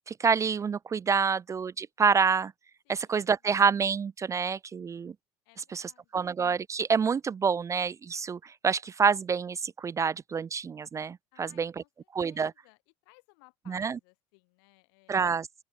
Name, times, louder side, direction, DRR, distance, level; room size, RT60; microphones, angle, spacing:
voice 1, 0.1-2.5 2.9-5.1 5.7-5.8 6.1-11.7 12.1-12.5 13.7-14.0 15.1-15.5, right 6 dB, 25° right, 0.4 m, -27 dB
voice 2, 2.8-3.4 5.5-6.3 11.3-15.4, left 32 dB, 75° left, 7.0 m, -62 dB
open air
hypercardioid pair, 85°, 12 cm